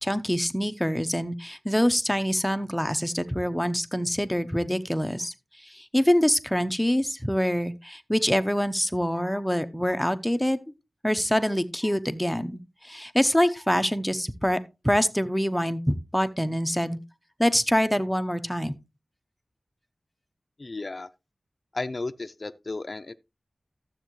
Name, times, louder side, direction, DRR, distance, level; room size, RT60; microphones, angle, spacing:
voice 1, 0.0-5.3 5.6-10.6 11.0-14.6 14.8-17.0 17.4-18.7, equal, 5° left, 0.8 m, -25 dB
voice 2, 20.6-21.1 21.7-23.2, left 3 dB, 50° left, 0.5 m, -34 dB
12.5 x 7.5 x 3.1 m
wide cardioid pair, 65°, 0 cm